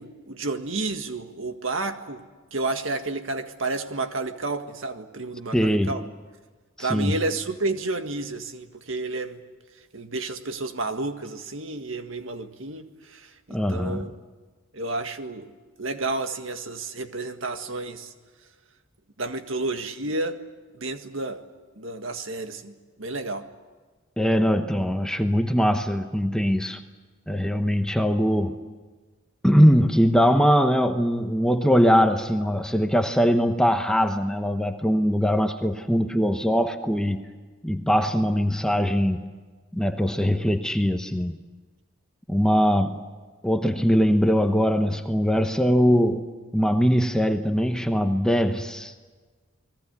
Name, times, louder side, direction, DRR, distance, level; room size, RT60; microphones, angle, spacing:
voice 1, 0.0-2.2 2.5-6.0 6.8-9.4 9.9-14.1 14.7-15.5 15.8-18.1 19.2-20.4 20.8-21.4 21.8-22.7 23.0-23.5, right 2 dB, 70° right, 7 dB, 1.8 m, -31 dB
voice 2, 5.5-6.1 6.8-7.2 13.5-14.1 24.2-26.8 27.3-28.6 29.4-37.2 37.6-39.3 39.7-41.4 42.3-43.0 43.4-46.2 46.5-48.9, equal, 5° left, 6 dB, 1.0 m, -21 dB
29.5 x 20.5 x 8.2 m, 1.4 s
head